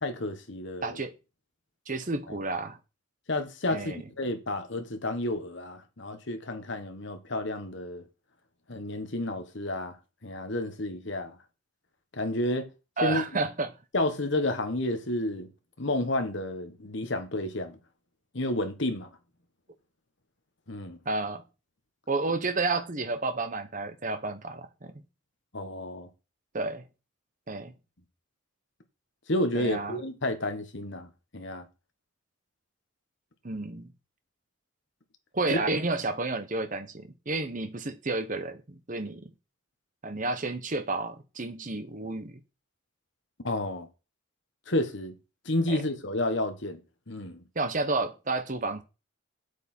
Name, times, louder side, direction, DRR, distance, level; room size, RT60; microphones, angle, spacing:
voice 1, 0.0-1.0 2.3-2.4 3.3-8.0 8.7-10.0 10.2-11.4 12.1-12.7 13.0-13.2 13.9-15.5 15.8-17.8 18.3-19.1 20.7-21.0 25.5-26.1 29.3-31.7 35.5-35.6 43.4-43.9 44.7-45.1 45.4-46.8 47.1-47.4, left 1 dB, 55° left, 1.3 m, -31 dB
voice 2, 0.8-1.1 1.9-2.8 3.7-4.0 13.0-13.7 21.1-21.4 22.1-24.9 26.5-26.8 27.5-27.7 29.5-30.0 33.4-33.9 35.3-39.3 40.0-42.4 45.7-45.8 47.5-48.8, right 3 dB, 40° right, 0.9 m, -31 dB
8.1 x 7.9 x 4.4 m
head